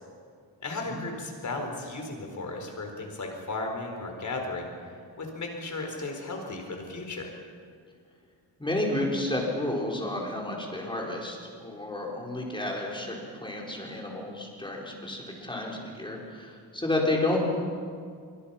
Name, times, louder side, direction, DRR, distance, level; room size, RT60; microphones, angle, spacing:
voice 1, 0.6-4.9 5.2-7.3, left 2 dB, 45° left, 3 dB, 4.6 m, -35 dB
voice 2, 8.6-17.4, left 1 dB, 10° left, -1 dB, 4.5 m, -31 dB
25.5 x 24.0 x 5.8 m, 2.2 s
wide cardioid pair, 145°, 41 cm